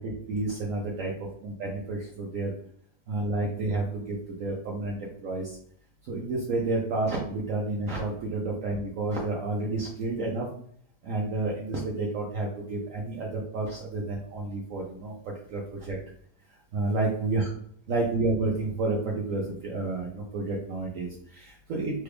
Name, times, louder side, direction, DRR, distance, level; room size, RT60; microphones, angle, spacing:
voice 1, 0.0-2.5 3.1-5.6 6.1-10.5 11.0-16.0 16.7-17.4 17.9-22.0, right 2 dB, 65° right, -2 dB, 0.9 m, -30 dB
3.3 x 2.3 x 3.3 m, 0.64 s
omnidirectional pair, 1.7 m